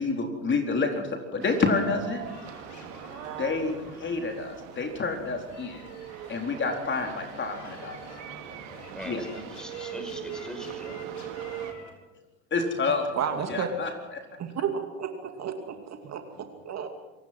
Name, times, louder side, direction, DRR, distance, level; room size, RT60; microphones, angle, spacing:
voice 1, 0.0-2.3 3.4-5.9 6.3-8.0 8.2-8.3 9.1-9.2 12.5-13.1 13.5-14.2, left 4 dB, 30° left, 3 dB, 4.3 m, -28 dB
sound 1, 1.4-11.7, right 11 dB, 75° right, 2.7 m, -41 dB
sound 2, 2.2-11.9, left 4 dB, 45° left, 6.4 m, -49 dB
voice 2, 8.5-11.1, equal, ahead, 6 dB, 5.6 m, -42 dB
voice 3, 13.1-13.7 14.4-16.9, right 7 dB, 40° right, 5 dB, 2.6 m, -32 dB
27.0 x 17.5 x 6.2 m, 1.1 s
hypercardioid pair, 85°, 39 cm